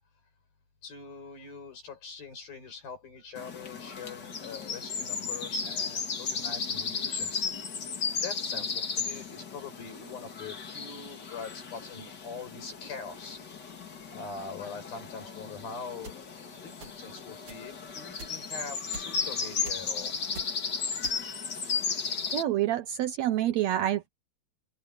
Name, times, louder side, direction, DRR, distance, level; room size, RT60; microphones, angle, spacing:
voice 1, 0.8-7.5 8.2-13.4 14.1-20.1, left 5 dB, 75° left, 8.8 m, -43 dB
sound 1, 3.4-22.4, left 5 dB, 35° left, 2.1 m, -35 dB
sound 2, 16.0-16.2 16.8-17.1 17.5-17.6 18.2-18.5 18.9-19.3 19.6-19.9 20.3-20.6 21.0-21.4, right 3 dB, 40° right, 3.8 m, -44 dB
voice 2, 22.3-24.1, right 12 dB, 85° right, 1.5 m, -27 dB
open air
omnidirectional pair, 4.1 m